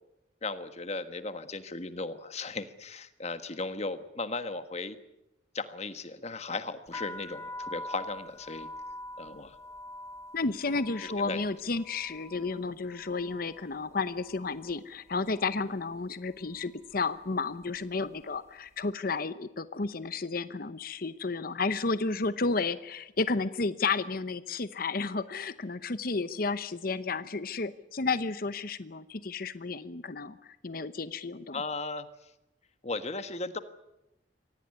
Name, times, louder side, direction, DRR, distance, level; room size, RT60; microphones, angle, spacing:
voice 1, 0.4-5.0 5.5-8.7 9.2-9.5 11.0-11.4 31.5-32.1 32.8-33.6, left 3 dB, 35° left, 10 dB, 1.5 m, -36 dB
sound 1, 6.9-14.8 15.1-15.7 16.4-16.6 16.9-18.4, left 1 dB, 15° left, 1.2 m, -45 dB
voice 2, 10.3-31.6, left 3 dB, 55° left, 13 dB, 0.9 m, -32 dB
24.0 x 17.5 x 9.7 m, 0.91 s
head